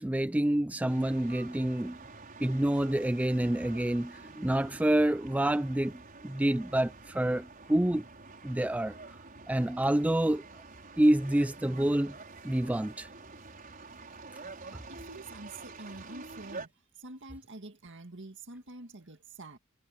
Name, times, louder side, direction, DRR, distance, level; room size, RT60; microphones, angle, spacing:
voice 1, 0.0-2.0 2.4-5.9 6.2-8.0 8.4-8.9 9.5-10.4 11.0-12.1 12.4-13.1, right 1 dB, 5° right, 0.3 m, -27 dB
sound 1, 0.9-16.7, right 3 dB, 40° right, 5.4 m, -48 dB
voice 2, 14.6-16.7 17.0-19.6, right 2 dB, 55° right, 2.1 m, -47 dB
head